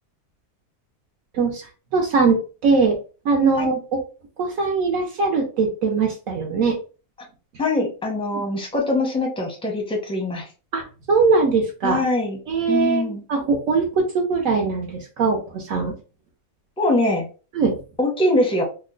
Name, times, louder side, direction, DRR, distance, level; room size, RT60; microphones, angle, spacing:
voice 1, 1.3-1.7 1.9-3.0 3.2-3.8 4.4-6.7 8.3-8.4 10.7-10.8 11.1-12.0 12.5-15.9 17.6-17.8, right 4 dB, 75° right, 0 dB, 1.1 m, -21 dB
voice 2, 7.6-10.5 11.8-12.4 12.7-13.2 16.8-17.3 18.0-18.6, left 2 dB, 5° left, 1 dB, 0.5 m, -22 dB
2.9 x 2.1 x 3.7 m, 0.35 s
omnidirectional pair, 1.5 m